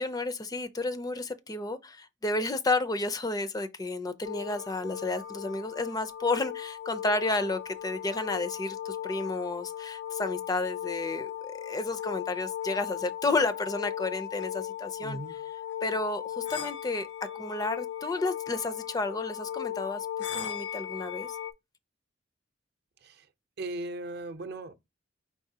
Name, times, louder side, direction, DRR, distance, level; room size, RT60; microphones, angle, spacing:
voice 1, 0.0-15.2 15.8-17.1 17.3-20.1 20.3-21.3, left 2 dB, 20° left, 0.4 m, -31 dB
sound 1, 4.2-21.5, left 11 dB, 70° left, 0.5 m, -37 dB
voice 2, 15.0-15.4 23.0-23.3 23.6-24.7, right 2 dB, 60° right, 0.6 m, -38 dB
4.8 x 3.9 x 2.7 m
head